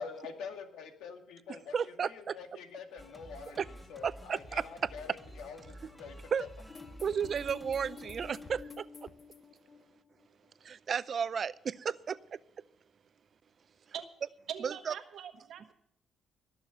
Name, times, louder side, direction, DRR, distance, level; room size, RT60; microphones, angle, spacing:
voice 1, 0.0-6.5, left 5 dB, 85° left, 5 dB, 2.0 m, -46 dB
voice 2, 1.7-2.4 3.6-3.7 4.0-4.6 6.3-6.4 7.0-8.9 10.6-12.4 14.6-14.9, right 7 dB, 50° right, 18 dB, 0.5 m, -33 dB
Singing, 3.0-8.6, equal, 5° left, 2.2 m, -51 dB
sound 1, 6.7-10.5, left 4 dB, 40° left, 1.3 m, -50 dB
voice 3, 14.5-15.7, right 8 dB, 70° right, 8 dB, 1.4 m, -42 dB
20.0 x 7.0 x 6.9 m, 0.72 s
cardioid pair, 90°, 0 cm